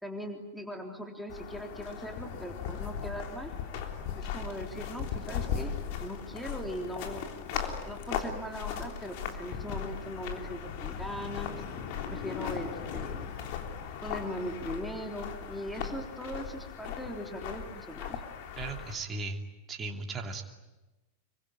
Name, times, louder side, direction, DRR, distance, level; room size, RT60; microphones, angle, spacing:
voice 1, 0.0-3.5 4.2-5.7 6.0-7.3 7.9-11.6 12.1-13.3 14.0-18.2, equal, ahead, 2 dB, 3.7 m, -40 dB
sound 1, 1.3-18.9, left 7 dB, 45° left, 3.4 m, -38 dB
voice 2, 18.6-19.4 19.7-20.4, right 3 dB, 20° right, 3 dB, 2.9 m, -36 dB
26.5 x 24.0 x 9.1 m, 1.1 s
figure-of-eight pair, 90°, 0 cm